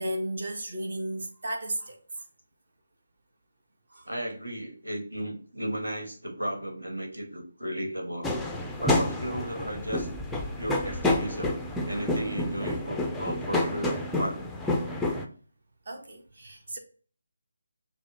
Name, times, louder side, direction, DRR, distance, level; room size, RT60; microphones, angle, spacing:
voice 1, 0.0-2.2 3.9-4.1 15.8-16.8, right 1 dB, 55° right, 1.1 m, -34 dB
voice 2, 4.0-8.3 8.8-10.1 10.6-11.6 11.8-14.4, right 1 dB, 85° right, 1.4 m, -34 dB
sound 1, 8.2-15.3, left 2 dB, 5° left, 0.4 m, -29 dB
5.6 x 2.1 x 3.6 m
figure-of-eight pair, 155°, 0 cm